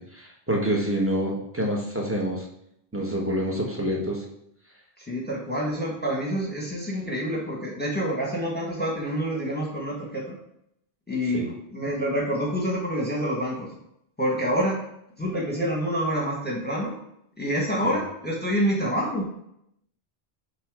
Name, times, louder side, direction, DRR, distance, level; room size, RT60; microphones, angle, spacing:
voice 1, 0.1-2.5 2.9-4.2 11.3-11.5 17.8-17.9, equal, 15° right, -1 dB, 1.2 m, -27 dB
voice 2, 5.0-10.3 11.1-13.7 14.2-14.8 15.2-16.9 17.4-19.3, equal, 10° left, -2 dB, 1.4 m, -27 dB
8.2 x 3.0 x 4.8 m, 0.77 s
omnidirectional pair, 1.1 m